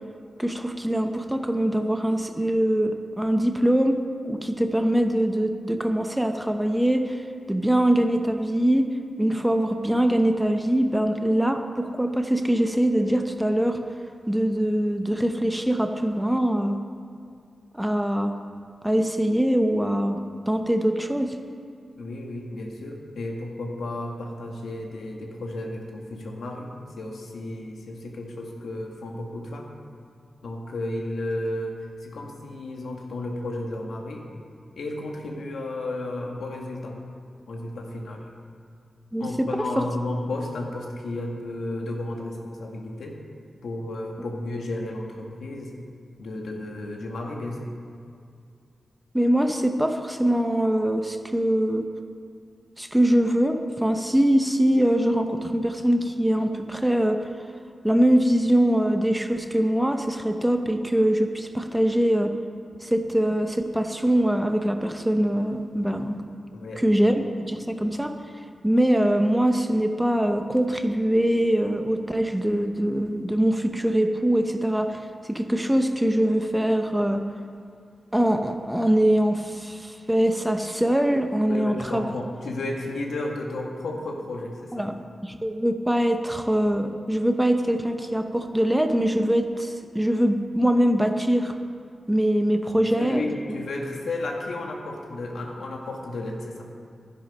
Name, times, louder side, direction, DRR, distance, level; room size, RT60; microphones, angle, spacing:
voice 1, 0.4-4.0 4.2-8.9 9.2-13.8 14.3-16.8 17.7-18.3 18.8-20.2 20.5-21.4 39.1-39.5 39.8-39.9 49.1-51.8 52.8-57.2 57.8-62.3 62.8-66.2 66.8-68.1 68.6-75.0 75.3-77.2 78.1-82.1 84.7-85.0 85.2-91.5 92.1-93.2, right 1 dB, 5° right, 6 dB, 0.8 m, -23 dB
voice 2, 22.0-29.8 30.4-31.7 32.0-34.3 34.8-37.0 37.5-38.2 39.2-43.2 43.6-45.7 46.2-47.7 66.5-66.8 81.4-84.9 92.8-96.7, left 2 dB, 85° left, 1 dB, 1.7 m, -33 dB
12.0 x 10.5 x 5.4 m, 2.4 s
wide cardioid pair, 105°, 0 cm